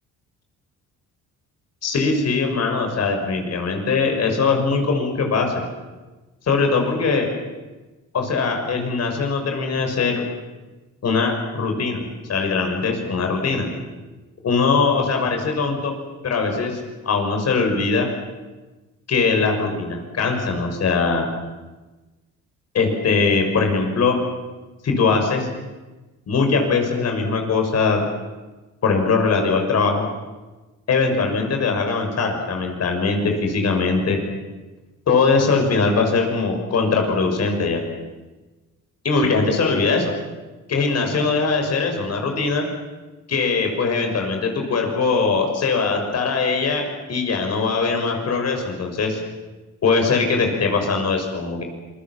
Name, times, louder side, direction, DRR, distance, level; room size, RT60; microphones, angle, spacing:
voice 1, 1.8-5.6 6.5-7.3 8.1-10.2 11.0-13.7 14.4-15.9 16.2-18.1 19.1-21.3 22.7-24.2 24.8-25.5 26.3-28.1 28.8-30.1 30.9-34.2 35.1-37.8 39.0-40.1 40.7-42.7 43.3-49.2 49.8-51.6, left 4 dB, 55° left, 3 dB, 6.2 m, -21 dB
26.5 x 22.0 x 7.5 m, 1.2 s
cardioid pair, 90°, 30 cm